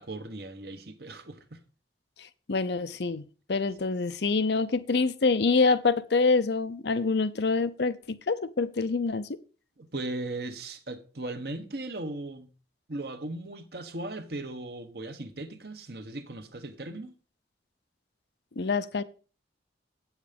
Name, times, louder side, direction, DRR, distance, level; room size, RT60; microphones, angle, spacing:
voice 1, 0.0-1.6 9.8-12.5 12.9-17.1, right 2 dB, 60° right, 1.2 m, -38 dB
voice 2, 2.2-3.2 3.5-9.3 18.6-19.0, left 4 dB, 65° left, 0.6 m, -26 dB
8.5 x 7.2 x 5.2 m
head